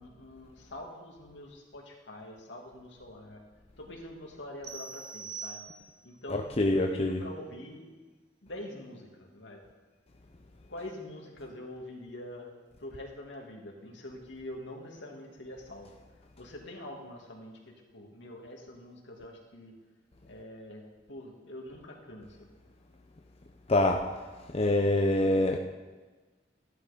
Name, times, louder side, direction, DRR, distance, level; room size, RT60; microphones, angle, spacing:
voice 1, 0.0-3.4 3.8-5.6 6.0-7.9 8.4-9.6 10.7-12.5 12.8-15.9 16.4-19.7 20.3-20.8 21.1-22.3, left 1 dB, 75° left, 0 dB, 2.4 m, -45 dB
sound 1, 4.6-6.2, right 5 dB, 60° right, 1.7 m, -43 dB
voice 2, 6.3-7.2 23.7-24.0 24.5-25.6, left 1 dB, 35° left, 3 dB, 0.7 m, -25 dB
13.5 x 11.0 x 5.2 m, 1.3 s
head